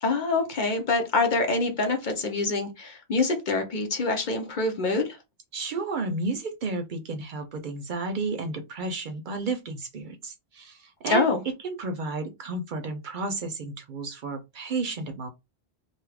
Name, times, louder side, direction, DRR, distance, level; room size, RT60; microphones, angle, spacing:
voice 1, 0.0-5.2 11.1-11.4, left 3 dB, 55° left, 0.7 m, -25 dB
voice 2, 5.5-11.3 11.6-15.3, right 3 dB, 60° right, 0.6 m, -32 dB
2.6 x 2.3 x 3.3 m
omnidirectional pair, 1.0 m